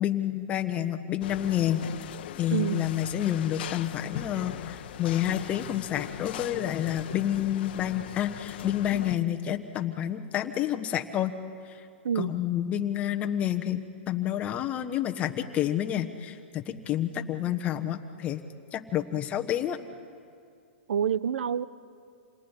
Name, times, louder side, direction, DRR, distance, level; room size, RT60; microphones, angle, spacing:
voice 1, 0.0-2.1 2.4-11.3 11.6-11.9 12.1-18.4 18.7-19.8, left 11 dB, 20° left, 6 dB, 1.2 m, -29 dB
sound 1, 1.2-9.2, left 11 dB, 55° left, 1.1 m, -39 dB
voice 2, 2.5-2.9 12.0-12.3 20.9-21.6, right 8 dB, 75° right, 16 dB, 0.9 m, -27 dB
28.0 x 19.5 x 10.0 m, 2.3 s
hypercardioid pair, 155°, 6 cm